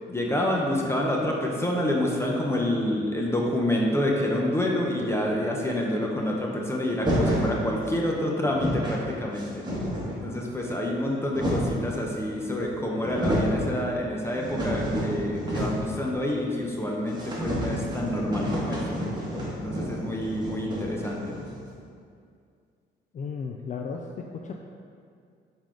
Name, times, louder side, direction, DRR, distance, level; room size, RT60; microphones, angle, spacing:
voice 1, 0.1-9.6 10.2-19.1 19.6-21.3, left 1 dB, 15° left, -2 dB, 0.8 m, -27 dB
sound 1, 7.0-7.5 8.2-8.3 8.4-9.0 9.4-10.2 10.9-11.9 12.6-12.7 13.0-13.6 14.0-15.9 16.2-16.3 16.6-16.7 17.1-21.6, equal, 20° right, 1.5 m, -30 dB
voice 2, 23.1-24.5, left 5 dB, 40° left, 2 dB, 0.4 m, -35 dB
7.0 x 3.7 x 3.7 m, 2.3 s
cardioid pair, 90°, 20 cm